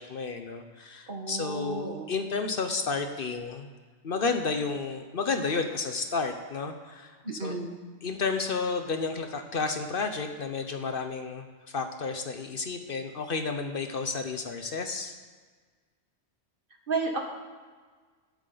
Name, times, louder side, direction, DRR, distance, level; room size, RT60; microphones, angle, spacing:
voice 1, 0.0-3.7 4.0-7.2 7.4-7.6 8.0-15.1, left 4 dB, 55° left, 6 dB, 0.9 m, -31 dB
voice 2, 1.1-2.0 7.2-7.8 16.9-17.2, right 3 dB, 50° right, 2 dB, 1.7 m, -32 dB
18.5 x 8.3 x 3.9 m, 1.5 s
omnidirectional pair, 1.2 m